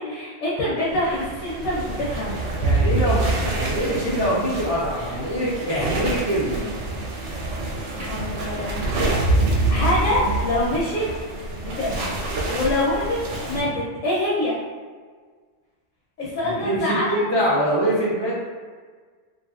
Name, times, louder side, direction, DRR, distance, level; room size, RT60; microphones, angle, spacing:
voice 1, 0.0-2.4 7.9-8.7 9.7-11.1 11.6-12.2 12.5-13.2 13.4-14.6 16.2-17.2, left 1 dB, 85° left, -7 dB, 1.0 m, -25 dB
sound 1, 1.0-13.6, right 2 dB, 70° right, 0.8 m, -26 dB
voice 2, 2.6-6.7 16.4-18.4, equal, 40° right, -10 dB, 0.3 m, -24 dB
2.8 x 2.4 x 2.3 m, 1.5 s
omnidirectional pair, 1.3 m